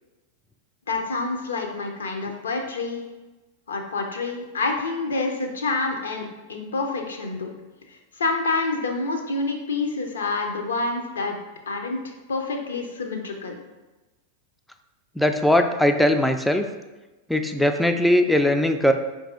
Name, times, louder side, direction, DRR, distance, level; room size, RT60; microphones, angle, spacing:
voice 1, 0.9-3.0 3.7-7.5 7.9-11.4 11.7-13.6, left 3 dB, 70° left, 3 dB, 0.6 m, -28 dB
voice 2, 15.2-16.6 17.3-18.9, left 1 dB, ahead, 6 dB, 0.3 m, -20 dB
4.6 x 2.6 x 3.6 m, 1.1 s
figure-of-eight pair, 90°, 0 cm